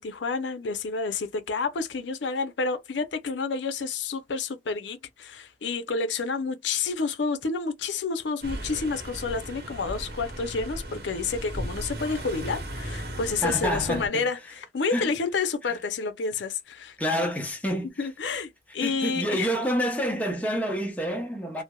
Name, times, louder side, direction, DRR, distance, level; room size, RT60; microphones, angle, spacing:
voice 1, 0.0-17.0 18.0-19.5, left 4 dB, 85° left, 0.5 m, -29 dB
sound 1, 8.4-14.1, right 1 dB, 60° right, 0.9 m, -36 dB
voice 2, 13.4-14.3 14.9-15.1 15.6-15.7 17.0-18.1 18.8-21.6, equal, 10° left, 0.6 m, -28 dB
3.2 x 2.0 x 2.2 m
head